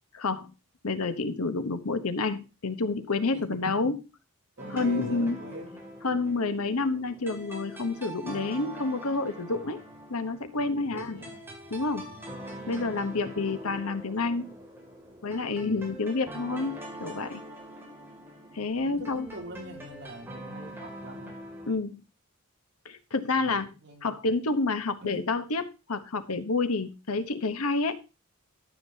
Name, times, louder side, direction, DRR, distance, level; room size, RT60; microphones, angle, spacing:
voice 1, 0.2-0.5 0.8-4.0 4.7-5.4 6.0-9.8 10.1-11.2 11.7-12.1 12.7-14.5 15.2-17.4 18.5-19.3 21.7-22.0 22.8-23.7 24.0-28.0, left 3 dB, 85° left, 11 dB, 1.0 m, -29 dB
voice 2, 3.3-3.8 4.6-5.8 9.5-9.8 10.6-11.5 12.0-12.3 12.8-13.6 15.5-15.8 18.8-21.4 23.3-24.2 25.0-25.2, right 1 dB, 55° right, 1 dB, 2.7 m, -45 dB
sound 1, 4.6-21.7, right 1 dB, 10° right, 2.5 m, -43 dB
13.5 x 7.4 x 2.8 m, 0.30 s
head